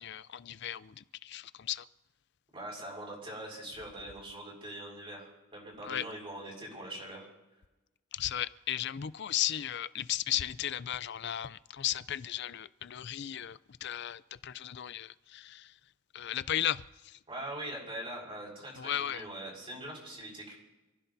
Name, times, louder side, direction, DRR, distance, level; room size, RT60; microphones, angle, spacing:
voice 1, 0.0-1.9 5.8-6.0 8.1-15.7 16.1-17.2 18.8-19.2, left 11 dB, 55° left, 16 dB, 0.5 m, -35 dB
voice 2, 2.5-7.3 17.3-20.5, right 1 dB, 25° right, -2 dB, 5.4 m, -42 dB
28.0 x 15.5 x 2.7 m, 1.1 s
head